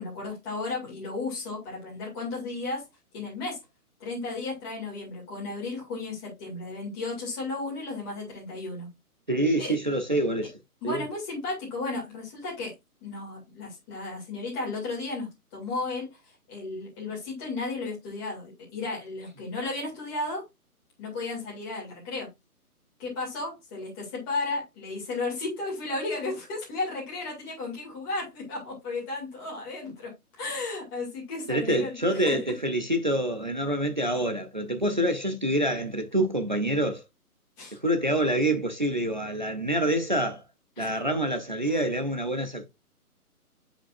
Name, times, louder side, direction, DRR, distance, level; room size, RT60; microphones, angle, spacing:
voice 1, 0.0-2.9 3.1-3.6 4.0-8.9 9.6-9.7 10.8-12.7 13.0-20.4 21.0-22.3 23.0-32.4 37.6-37.8 40.8-41.1 41.7-41.8, left 3 dB, 15° left, 2.4 m, -34 dB
voice 2, 9.3-10.5 10.8-11.0 31.5-37.0 37.8-40.4 40.8-42.7, right 1 dB, 35° right, 0.5 m, -26 dB
7.8 x 5.1 x 2.5 m
hypercardioid pair, 165°, 45 cm